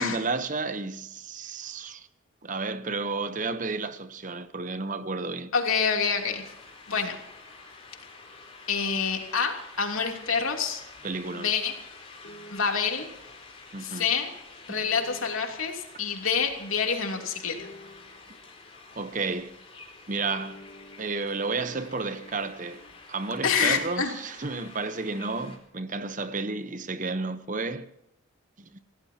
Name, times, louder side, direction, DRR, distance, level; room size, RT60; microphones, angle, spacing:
voice 1, 0.0-2.1 2.4-5.5 11.0-11.5 13.7-14.1 14.7-14.8 19.0-19.5 20.1-20.6 21.0-22.8 23.1-27.8, right 3 dB, 40° right, 0.9 m, -32 dB
voice 2, 5.5-6.4 6.9-7.2 8.7-10.8 11.3-11.7 12.5-13.1 13.8-14.3 14.7-17.6 23.4-24.1, left 6 dB, 80° left, 3.1 m, -27 dB
sound 1, 6.0-25.6, left 3 dB, 30° left, 4.0 m, -49 dB
sound 2, 12.2-13.0 14.9-15.7 17.6-18.4 20.2-22.9, equal, 50° left, 2.7 m, -49 dB
27.0 x 17.0 x 2.9 m
head